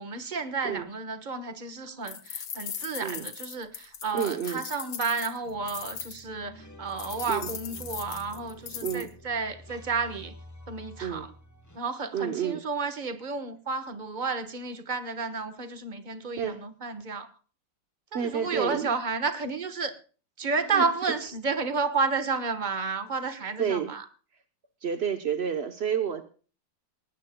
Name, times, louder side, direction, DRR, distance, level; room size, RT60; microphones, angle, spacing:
voice 1, 0.0-10.3 10.7-11.3 11.7-17.3 18.1-20.0 20.4-24.0, right 4 dB, 30° right, 10 dB, 1.0 m, -31 dB
sound 1, 2.1-6.2 7.0-9.1, left 8 dB, 65° left, 2.2 m, -39 dB
voice 2, 4.1-4.7 7.3-7.5 8.8-9.1 11.0-11.3 12.1-12.6 16.4-16.6 18.1-18.9 20.7-20.9 23.6-23.9 24.8-26.2, right 8 dB, 65° right, 8 dB, 0.6 m, -30 dB
sound 2, 5.4-11.8, left 1 dB, 15° left, 0.7 m, -48 dB
19.5 x 18.5 x 2.2 m, 0.38 s
omnidirectional pair, 2.4 m